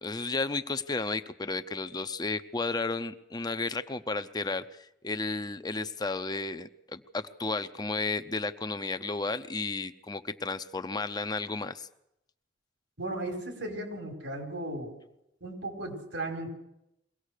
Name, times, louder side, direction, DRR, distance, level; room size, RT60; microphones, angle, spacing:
voice 1, 0.0-11.9, left 3 dB, 20° left, 11 dB, 0.7 m, -33 dB
voice 2, 13.0-14.9 15.4-16.5, right 1 dB, 90° right, 3 dB, 4.9 m, -36 dB
23.5 x 18.0 x 6.6 m, 0.83 s
head